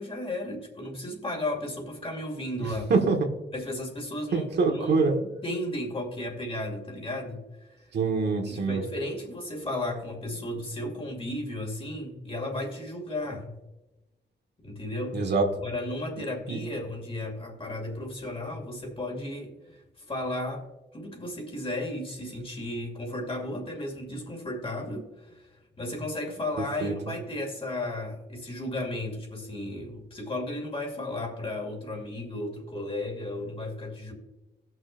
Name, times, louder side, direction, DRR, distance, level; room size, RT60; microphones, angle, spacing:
voice 1, 0.0-2.9 3.5-7.9 8.5-13.6 14.6-15.3 15.6-20.7 20.9-34.1, left 1 dB, 30° left, 1 dB, 2.5 m, -34 dB
voice 2, 2.6-3.2 4.3-5.1 7.9-8.8 15.1-15.4 16.5-16.6 26.8-26.9, right 4 dB, 70° right, 1 dB, 1.6 m, -25 dB
18.0 x 6.2 x 2.6 m, 1.0 s
wide cardioid pair, 125°, 18 cm